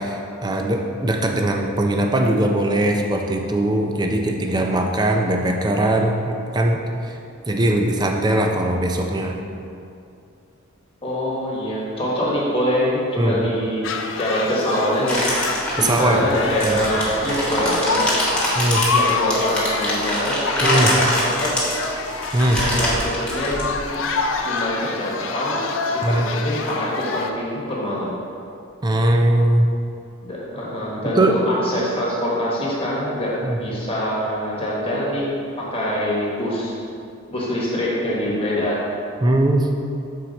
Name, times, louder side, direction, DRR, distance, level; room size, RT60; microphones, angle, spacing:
voice 1, 0.0-7.2 7.5-9.4 13.2-13.4 15.8-16.3 16.6-16.8 18.5-18.9 20.6-20.9 22.3-22.6 26.0-26.3 28.8-29.7 31.2-31.4 33.4-33.6 39.2-39.7, right 1 dB, 20° right, 3 dB, 0.4 m, -20 dB
voice 2, 11.0-13.8 14.2-15.2 15.8-18.0 18.9-21.6 22.6-24.0 24.4-25.6 25.9-28.2 30.2-36.8 37.3-38.9, equal, 25° left, -6 dB, 1.2 m, -24 dB
sound 1, 13.8-27.3, left 4 dB, 65° left, 0.4 m, -27 dB
sound 2, 15.1-24.3, left 1 dB, 5° left, 1.2 m, -25 dB
6.3 x 4.4 x 4.0 m, 2.5 s
head